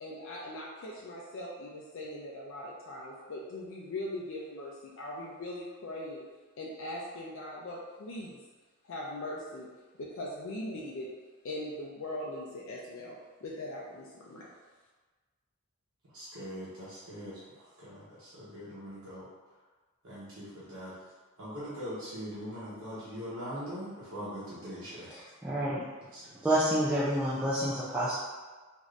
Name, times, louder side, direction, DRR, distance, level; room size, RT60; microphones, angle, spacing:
voice 1, 0.0-6.2 6.6-8.4 8.8-11.1 11.4-14.5, left 1 dB, 65° left, -4 dB, 0.4 m, -40 dB
voice 2, 16.1-19.3 20.0-20.9 21.4-25.1 26.1-26.5, equal, 85° right, -11 dB, 0.9 m, -42 dB
voice 3, 25.4-25.8 26.4-28.1, right 1 dB, 5° right, -10 dB, 0.3 m, -28 dB
3.1 x 2.6 x 2.4 m, 1.3 s
head